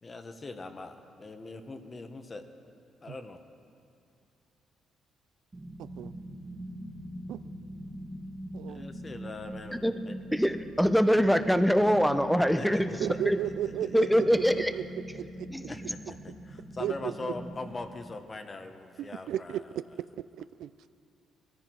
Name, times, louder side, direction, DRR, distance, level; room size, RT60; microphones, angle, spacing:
voice 1, 0.0-2.4 3.0-3.4 8.7-9.8 10.0-10.2 12.6-13.3 13.6-14.3 15.7-19.6, left 3 dB, 30° left, 7 dB, 1.2 m, -42 dB
sound 1, 5.5-17.7, right 1 dB, 25° right, 1.6 m, -43 dB
voice 2, 5.8-6.1 7.3-7.4 8.5-8.9 13.0-14.8 15.1-15.5 16.8-17.1 19.0-19.6 20.4-20.7, right 11 dB, 80° right, 15 dB, 0.3 m, -34 dB
voice 3, 10.3-12.9 13.2-13.4 13.9-14.7 15.5-15.7, equal, ahead, 10 dB, 0.7 m, -23 dB
20.5 x 14.0 x 4.6 m, 2.6 s
cardioid pair, 90°, 0 cm